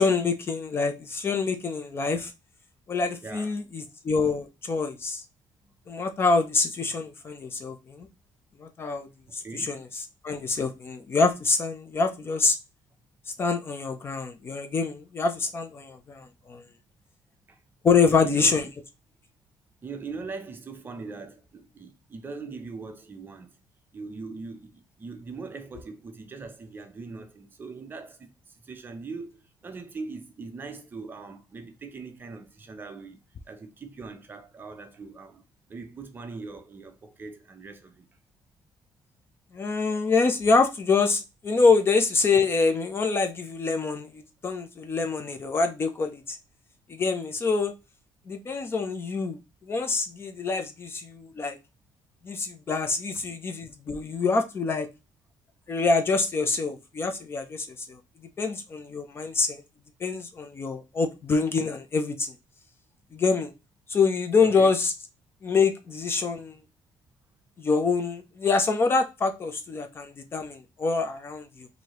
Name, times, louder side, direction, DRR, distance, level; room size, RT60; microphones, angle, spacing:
voice 1, 0.0-2.3 2.9-5.2 5.9-8.1 8.6-9.1 9.3-12.6 13.4-16.6 17.8-18.7 39.5-46.4 46.9-47.7 48.3-51.6 52.2-54.9 55.7-58.0 58.4-59.6 60.0-62.3 63.1-63.5 63.9-64.9 65.4-66.6 67.6-71.7, left 4 dB, 30° left, 0.5 m, -26 dB
voice 2, 3.2-3.5 5.6-5.7 9.3-9.8 17.5-17.6 18.1-18.5 19.8-23.5 23.9-35.4 35.7-38.0 64.4-64.7, right 4 dB, 25° right, 0.6 m, -41 dB
4.6 x 2.7 x 2.9 m
cardioid pair, 160°, 9 cm